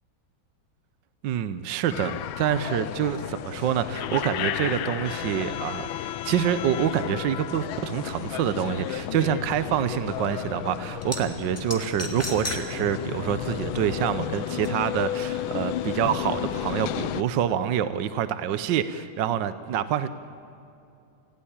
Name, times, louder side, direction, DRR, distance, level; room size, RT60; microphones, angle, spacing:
voice 1, 1.2-20.1, right 9 dB, 70° right, 12 dB, 1.4 m, -27 dB
sound 1, 1.9-17.2, left 11 dB, 85° left, 1.6 m, -32 dB
sound 2, 11.0-11.2 11.6-12.6 13.0-13.1 14.6-14.7, left 1 dB, 5° left, 2.5 m, -32 dB
27.5 x 17.0 x 8.8 m, 2.6 s
omnidirectional pair, 2.2 m